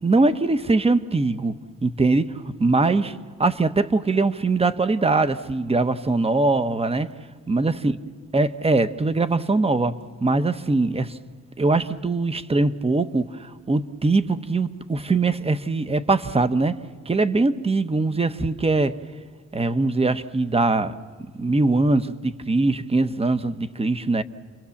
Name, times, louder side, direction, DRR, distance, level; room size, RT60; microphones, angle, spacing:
voice 1, 0.0-1.5 1.8-7.1 7.5-7.9 8.3-11.2 11.6-16.8 17.1-18.9 19.5-20.9 21.4-24.2, right 3 dB, 20° right, 1.1 m, -22 dB
30.0 x 23.0 x 7.2 m
cardioid pair, 90°, 30 cm